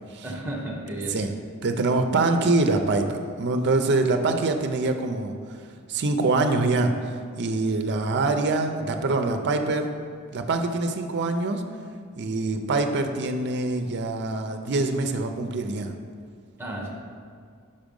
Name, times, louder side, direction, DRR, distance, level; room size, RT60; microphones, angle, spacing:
voice 1, 0.2-1.2 16.6-16.9, right 1 dB, 10° right, -1 dB, 0.9 m, -33 dB
voice 2, 1.6-5.3 5.9-10.0 10.3-11.6 12.2-15.9, right 3 dB, 50° right, 6 dB, 0.5 m, -24 dB
5.4 x 5.0 x 5.2 m, 2.1 s
head